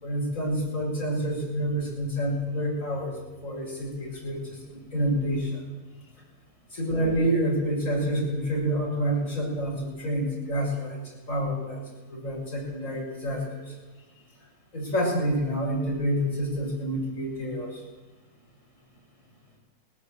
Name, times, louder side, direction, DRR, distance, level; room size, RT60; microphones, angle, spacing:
voice 1, 0.0-3.1 3.4-4.4 4.7-5.5 6.7-11.0 11.3-11.8 12.1-13.6 14.7-17.7, equal, 50° left, -2 dB, 7.0 m, -28 dB
19.5 x 18.0 x 7.5 m, 1.2 s
omnidirectional pair, 1.8 m